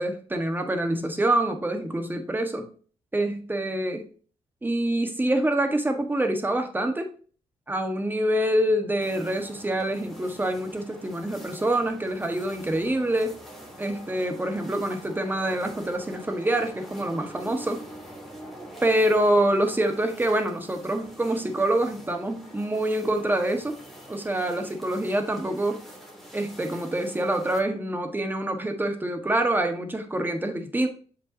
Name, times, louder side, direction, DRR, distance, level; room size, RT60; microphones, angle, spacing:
voice 1, 0.0-2.7 3.1-4.1 4.6-7.1 7.7-13.4 13.8-17.9 18.8-23.8 24.1-25.9 26.3-30.9, right 1 dB, 15° right, 5 dB, 1.5 m, -26 dB
sound 1, 9.0-27.6, right 1 dB, ahead, 2.6 m, -45 dB
7.6 x 5.4 x 2.8 m, 0.41 s
cardioid pair, 95°, 12 cm